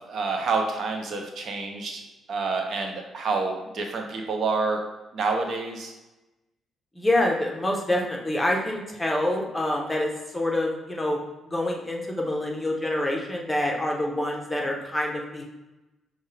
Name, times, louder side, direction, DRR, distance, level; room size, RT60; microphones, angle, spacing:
voice 1, 0.0-2.0 2.3-4.8 5.1-5.9, right 4 dB, 60° right, 2 dB, 0.6 m, -28 dB
voice 2, 6.9-11.2 11.4-15.4, left 1 dB, 10° left, -1 dB, 0.9 m, -26 dB
5.4 x 2.3 x 3.3 m, 1.0 s
cardioid pair, 90°, 0 cm